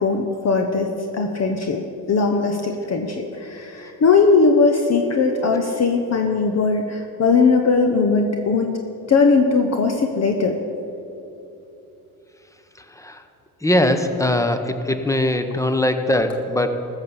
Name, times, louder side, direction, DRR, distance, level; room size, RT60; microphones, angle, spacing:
voice 1, 0.0-1.8 2.1-8.7 9.1-10.6, left 4 dB, 40° left, 4 dB, 1.1 m, -19 dB
voice 2, 12.8-13.2 13.6-16.7, left 1 dB, 5° left, 8 dB, 1.0 m, -21 dB
15.0 x 6.2 x 7.0 m, 2.8 s
hypercardioid pair, 65°, 41 cm